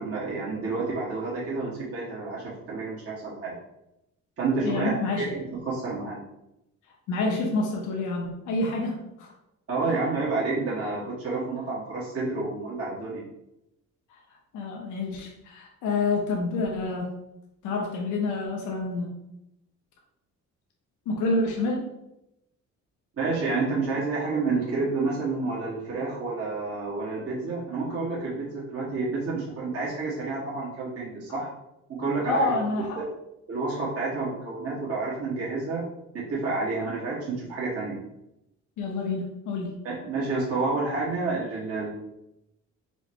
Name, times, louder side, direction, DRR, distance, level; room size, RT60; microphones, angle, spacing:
voice 1, 0.0-3.5 4.4-6.2 9.7-13.2 23.2-31.5 32.0-32.5 33.0-33.1 33.5-35.8 36.1-38.0 39.8-41.9, right 3 dB, 50° right, -6 dB, 1.5 m, -29 dB
voice 2, 4.6-5.3 7.1-9.3 9.8-10.0 14.5-17.1 17.6-19.1 21.1-21.9 32.2-33.0 38.8-39.8, left 3 dB, 90° left, -1 dB, 0.9 m, -28 dB
4.5 x 2.2 x 4.3 m, 0.86 s
cardioid pair, 90°, 30 cm